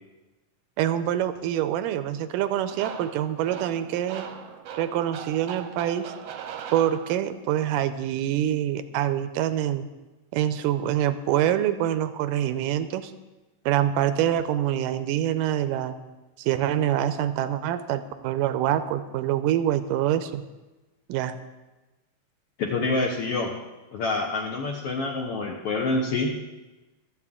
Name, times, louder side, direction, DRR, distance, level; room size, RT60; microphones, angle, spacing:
voice 1, 0.8-4.3 4.7-6.1 6.7-9.9 10.3-13.1 13.7-16.0 16.4-20.4 21.1-21.4, right 11 dB, 85° right, 12 dB, 2.3 m, -25 dB
sound 1, 2.7-7.5, right 8 dB, 70° right, 1.7 m, -40 dB
voice 2, 22.6-23.5 23.9-26.3, left 3 dB, 65° left, 1 dB, 1.5 m, -27 dB
24.0 x 8.2 x 3.7 m, 1.1 s
omnidirectional pair, 3.8 m